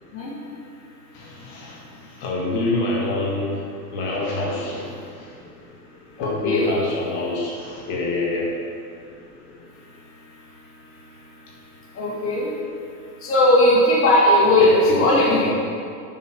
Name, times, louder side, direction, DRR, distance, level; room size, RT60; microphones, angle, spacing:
voice 1, 1.1-3.6 3.9-5.4 6.2-8.6 14.6-15.5, left 2 dB, 45° left, -3 dB, 2.0 m, -26 dB
voice 2, 6.2-6.7 12.0-12.5 13.2-15.5, left 1 dB, 25° left, -4 dB, 2.0 m, -17 dB
8.4 x 6.3 x 6.1 m, 2.3 s
hypercardioid pair, 125°, 50 cm